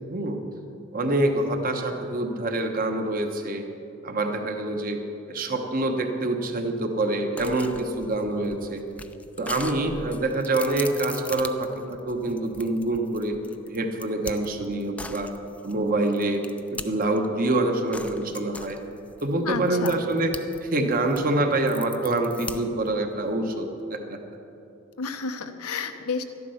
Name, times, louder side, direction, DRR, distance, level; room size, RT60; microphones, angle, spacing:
voice 1, 0.1-0.4 0.9-3.6 4.0-5.0 5.3-8.9 9.4-13.4 13.7-15.3 15.6-16.4 16.7-18.8 19.2-20.3 20.6-24.2, right 2 dB, 40° right, 5 dB, 1.0 m, -26 dB
sound 1, 7.4-17.2 17.9-20.6 20.9-22.9, left 2 dB, 5° left, 0.3 m, -40 dB
voice 2, 19.5-20.0 25.0-26.2, left 5 dB, 85° left, 8 dB, 0.9 m, -31 dB
13.0 x 11.0 x 5.7 m, 2.8 s
head